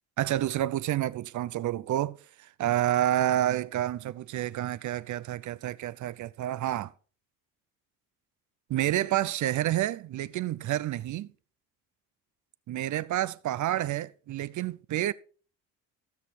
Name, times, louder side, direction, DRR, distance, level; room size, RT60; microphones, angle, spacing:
voice 1, 0.2-6.9 8.7-11.3 12.7-15.1, right 13 dB, 55° right, 0.7 m, -29 dB
15.5 x 6.3 x 4.3 m
supercardioid pair, 75°, 35 cm